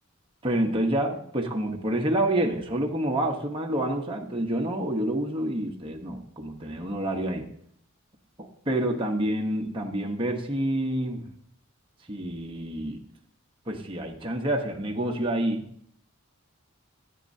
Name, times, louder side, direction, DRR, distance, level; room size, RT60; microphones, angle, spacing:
voice 1, 0.4-7.5 8.4-11.2 12.1-13.0 13.7-15.6, right 1 dB, 25° right, 1 dB, 1.0 m, -28 dB
15.0 x 8.6 x 2.7 m, 0.69 s
head